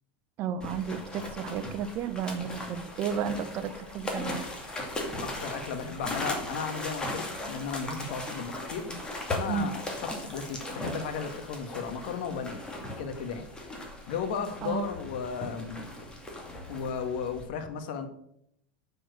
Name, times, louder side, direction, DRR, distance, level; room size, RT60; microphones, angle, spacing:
voice 1, 0.4-4.5 9.5-9.7 14.6-14.9, right 7 dB, 40° right, 11 dB, 0.9 m, -33 dB
sound 1, 0.6-17.4, left 1 dB, 15° left, 2.3 m, -38 dB
voice 2, 5.2-8.9 9.3-12.6 13.0-13.4 14.1-15.8 16.7-18.1, left 6 dB, 65° left, 6 dB, 1.6 m, -35 dB
7.5 x 6.9 x 6.2 m, 0.72 s
supercardioid pair, 130°, 6 cm